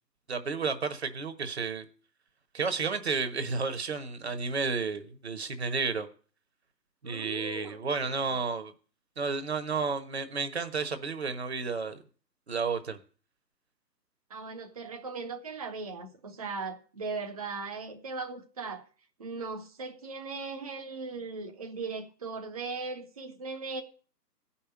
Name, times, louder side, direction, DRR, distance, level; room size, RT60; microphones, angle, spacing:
voice 1, 0.3-1.9 2.5-6.1 7.0-8.7 9.2-12.0 12.5-13.0, right 4 dB, 40° right, 1.2 m, -32 dB
voice 2, 7.0-8.1 14.3-18.9 19.2-23.8, right 4 dB, 20° right, 0.9 m, -38 dB
16.0 x 5.7 x 8.7 m
figure-of-eight pair, 145°, 49 cm